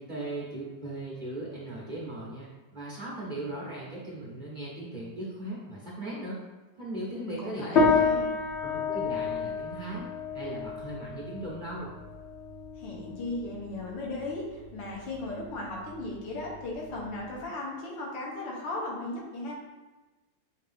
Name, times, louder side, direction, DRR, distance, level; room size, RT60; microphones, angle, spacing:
voice 1, 0.0-6.4 6.8-8.1 8.6-10.1 10.3-11.9, right 1 dB, 75° right, -6 dB, 0.4 m, -38 dB
voice 2, 7.1-8.3 12.8-19.5, left 2 dB, 85° left, -3 dB, 1.7 m, -36 dB
sound 1, 7.8-17.4, left 4 dB, 65° left, 0.6 m, -30 dB
5.7 x 2.6 x 3.4 m, 1.2 s
omnidirectional pair, 2.0 m